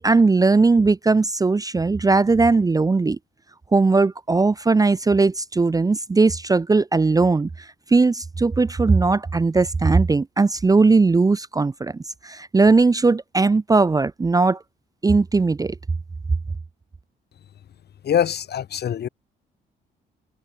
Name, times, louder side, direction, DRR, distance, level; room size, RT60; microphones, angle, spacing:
voice 1, 0.0-3.2 3.7-7.5 7.9-11.9 12.2-14.6 15.0-15.7, right 3 dB, 20° right, 0.5 m, -18 dB
voice 2, 18.0-19.1, left 9 dB, 55° left, 1.2 m, -23 dB
cardioid pair, 90°, 20 cm